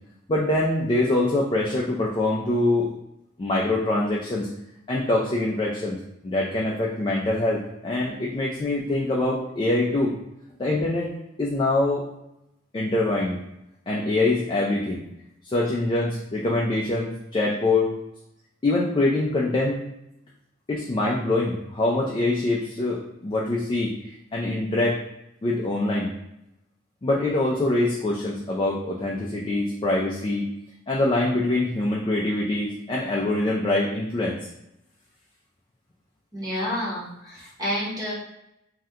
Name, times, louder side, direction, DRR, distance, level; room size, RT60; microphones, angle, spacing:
voice 1, 0.3-2.9 3.4-4.5 4.9-6.0 6.2-10.1 10.6-12.0 12.7-13.4 13.9-15.0 15.4-17.9 18.6-19.8 20.7-23.9 24.3-25.0 25.4-26.1 27.0-30.5 30.9-34.4, left 2 dB, 25° left, -3 dB, 0.4 m, -24 dB
voice 2, 36.3-38.1, equal, 20° right, -7 dB, 0.8 m, -29 dB
2.8 x 2.2 x 3.5 m, 0.83 s
head